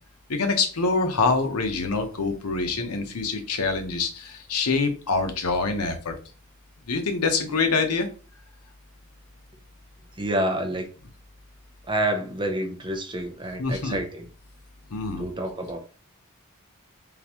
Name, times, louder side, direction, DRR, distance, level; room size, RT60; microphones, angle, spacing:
voice 1, 0.3-6.1 6.9-8.1 13.6-14.0 14.9-15.3, left 4 dB, 85° left, 0.9 m, -25 dB
voice 2, 10.2-10.9 11.9-14.3 15.2-15.8, right 1 dB, 20° right, 0.5 m, -28 dB
3.9 x 3.4 x 2.9 m
head